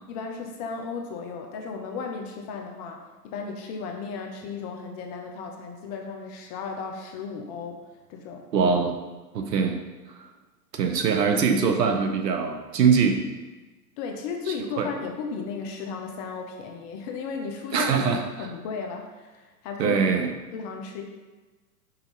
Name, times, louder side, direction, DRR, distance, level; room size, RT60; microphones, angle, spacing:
voice 1, 0.1-7.8 8.1-8.5 14.0-18.0 18.4-20.3 20.5-21.0, left 5 dB, 25° left, 3 dB, 0.5 m, -35 dB
voice 2, 8.5-8.9 9.3-9.8 10.1-10.3 10.7-13.2 14.5-14.9 17.7-18.2 19.8-20.3, right 5 dB, 80° right, 5 dB, 1.0 m, -23 dB
5.5 x 4.0 x 5.2 m, 1.2 s
hypercardioid pair, 115°, 49 cm